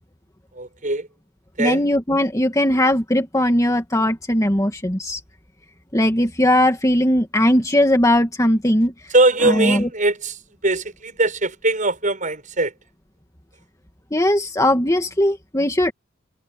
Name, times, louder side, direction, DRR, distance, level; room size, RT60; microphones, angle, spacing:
voice 1, 0.5-1.1 1.6-1.9 9.1-10.4 10.6-12.7, right 2 dB, 40° right, 7.3 m, -21 dB
voice 2, 1.6-5.2 5.9-8.9 9.4-9.9 14.1-15.9, left 1 dB, 15° left, 2.1 m, -19 dB
head